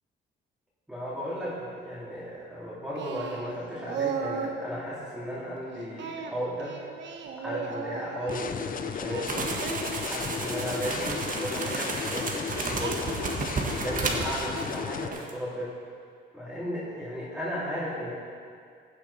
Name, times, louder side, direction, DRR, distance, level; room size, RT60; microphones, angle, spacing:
voice 1, 0.9-6.8 7.4-9.4 10.0-13.1 13.8-15.8 16.3-18.1, equal, 5° right, -9 dB, 3.3 m, -35 dB
Singing, 3.0-4.6 6.0-8.5 9.0-10.8 11.6-11.8 12.8-13.4, right 6 dB, 65° right, 1.2 m, -36 dB
sound 1, 8.3-15.1, left 6 dB, 45° left, 0.7 m, -34 dB
sound 2, 9.2-14.8 15.1-15.3, right 3 dB, 45° right, 1.6 m, -33 dB
15.5 x 8.6 x 4.4 m, 2.3 s
cardioid pair, 90°, 20 cm